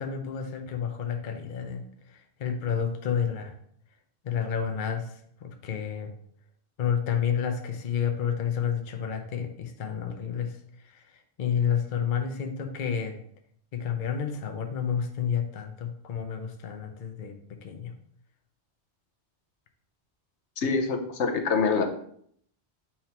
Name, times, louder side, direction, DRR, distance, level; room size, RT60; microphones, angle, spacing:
voice 1, 0.0-3.5 4.2-6.1 6.8-13.2 13.7-17.4 17.6-17.9, left 7 dB, 50° left, 5 dB, 0.8 m, -30 dB
voice 2, 20.6-21.8, left 5 dB, 80° left, 5 dB, 1.1 m, -25 dB
7.3 x 4.6 x 2.9 m, 0.66 s
omnidirectional pair, 1.1 m